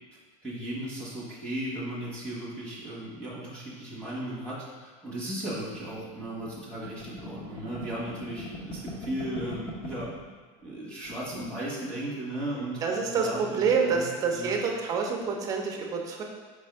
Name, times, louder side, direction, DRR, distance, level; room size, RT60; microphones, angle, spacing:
voice 1, 0.4-10.1 10.6-12.8 13.2-14.1 14.3-14.5, right 1 dB, 5° left, -8 dB, 1.1 m, -36 dB
sound 1, 5.7-10.3 10.6-10.7 11.0-11.6, left 1 dB, 35° left, 0.7 m, -42 dB
voice 2, 12.8-16.2, right 5 dB, 20° right, 1 dB, 0.5 m, -27 dB
4.4 x 3.6 x 3.3 m, 1.4 s
cardioid pair, 170°, 16 cm